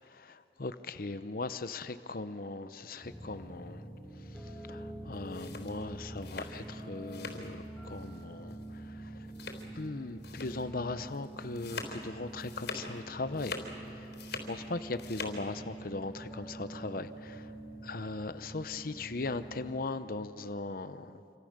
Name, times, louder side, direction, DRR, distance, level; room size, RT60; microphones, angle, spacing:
voice 1, 0.0-3.8 4.7-9.3 9.7-13.6 13.9-14.1 14.4-17.5 17.8-21.2, left 3 dB, 55° left, 11 dB, 0.8 m, -39 dB
sound 1, 3.0-19.7, right 1 dB, ahead, 7.4 m, -46 dB
sound 2, 5.1-7.5 7.8-8.2 8.5-8.6 9.3-9.9 10.2-10.6 11.0-13.0 13.3-14.6 14.8-15.4, left 4 dB, 85° left, 3.8 m, -43 dB
27.0 x 26.5 x 6.7 m, 2.7 s
head